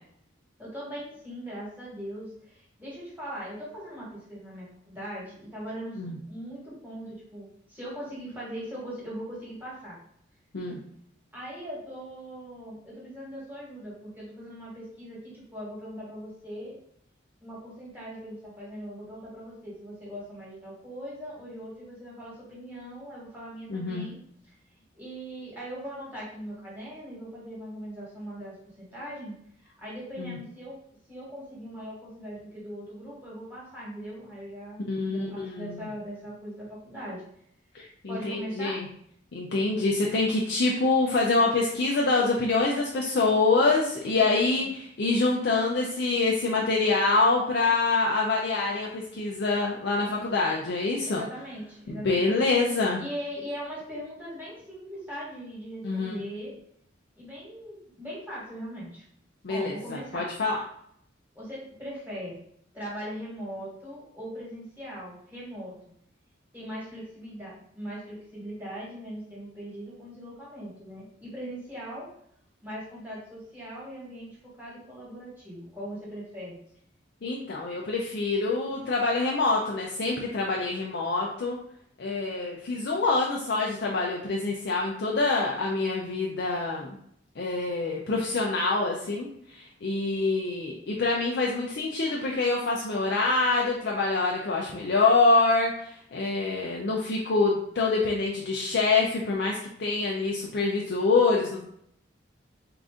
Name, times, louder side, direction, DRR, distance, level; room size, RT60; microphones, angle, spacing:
voice 1, 0.6-10.0 11.3-16.8 17.4-24.2 24.4-24.5 24.9-30.8 31.1-37.2 38.1-38.8 44.0-44.7 50.0-50.5 51.1-52.3 53.0-56.5 57.1-59.0 59.5-60.3 61.3-62.5 62.7-65.7 66.5-72.1 72.6-76.6, equal, 10° right, -7 dB, 1.4 m, -40 dB
voice 2, 23.7-24.1 30.2-30.4 34.9-35.8 37.7-38.9 39.3-51.2 51.9-53.0 55.8-56.2 59.4-60.6 77.2-81.6 82.0-87.0 87.4-101.6, left 3 dB, 60° left, -2 dB, 0.5 m, -26 dB
3.8 x 2.5 x 3.6 m, 0.69 s
head